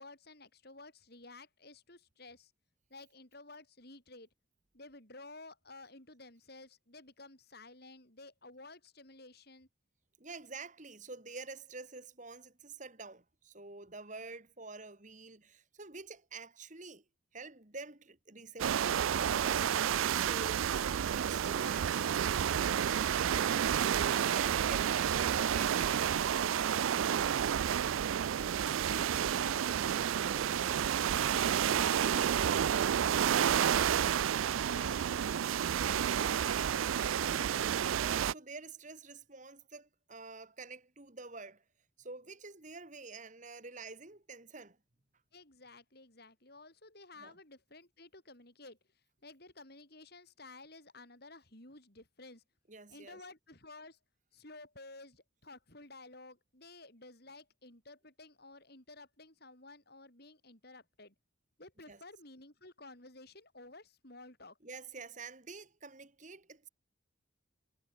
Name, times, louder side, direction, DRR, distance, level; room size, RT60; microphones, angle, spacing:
voice 1, 0.0-2.5 2.9-4.3 4.7-9.7 21.3-21.9 24.0-24.4 25.6-26.2 26.6-27.9 28.4-34.3 34.7-37.7 45.3-48.8 49.2-52.4 52.9-54.0 54.3-61.1 61.6-64.6, left 2 dB, 50° left, 6.2 m, -54 dB
voice 2, 10.2-17.0 17.3-19.8 20.2-20.6 21.2-21.8 22.5-22.7 23.7-26.0 30.2-30.4 38.0-41.6 42.0-44.8 47.2-47.4 52.7-53.2 61.9-62.0 64.6-66.7, right 3 dB, 35° right, 2.0 m, -48 dB
sound 1, 18.6-38.3, right 9 dB, 75° right, 0.4 m, -30 dB
head